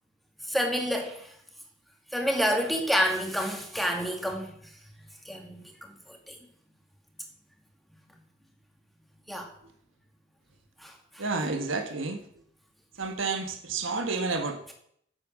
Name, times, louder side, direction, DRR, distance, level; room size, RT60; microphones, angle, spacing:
voice 1, 0.5-1.3 2.1-4.7 5.3-5.6 6.1-6.4 9.3-9.5 10.8-11.2, equal, ahead, 2 dB, 2.2 m, -29 dB
voice 2, 11.2-12.2 13.0-14.7, right 3 dB, 75° right, 6 dB, 1.4 m, -30 dB
11.0 x 8.9 x 7.4 m, 0.68 s
head